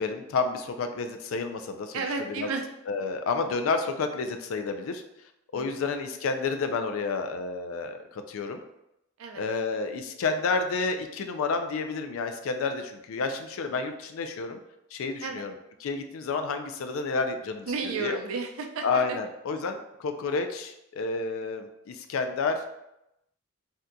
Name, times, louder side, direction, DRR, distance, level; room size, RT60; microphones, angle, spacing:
voice 1, 0.0-2.0 2.4-2.5 2.9-5.0 5.5-8.6 9.4-14.6 14.9-15.5 15.8-17.7 18.0-18.2 18.8-22.7, left 4 dB, 70° left, 7 dB, 0.4 m, -30 dB
voice 2, 1.9-2.6 5.5-5.9 9.2-9.4 15.2-15.5 17.7-19.2, right 4 dB, 75° right, 4 dB, 0.5 m, -33 dB
2.7 x 2.2 x 3.7 m, 0.86 s
head